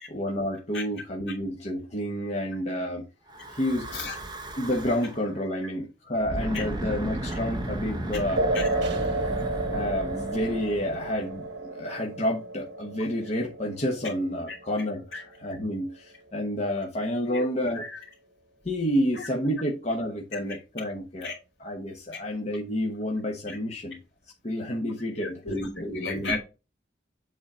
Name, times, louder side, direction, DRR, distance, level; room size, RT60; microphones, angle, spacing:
voice 1, 0.1-3.1 3.5-3.9 4.6-8.5 9.7-17.8 18.6-21.3 21.6-24.0 24.4-25.4 25.8-26.4, equal, 40° left, 1.1 m, -29 dB
Breathing / Wind, 3.3-5.2 6.1-11.5, right 1 dB, 25° right, 0.9 m, -35 dB
sound 1, 8.4-15.4, right 2 dB, 80° right, 1.1 m, -32 dB
voice 2, 25.2-26.4, left 3 dB, 85° left, 2.8 m, -33 dB
7.5 x 4.1 x 4.2 m
head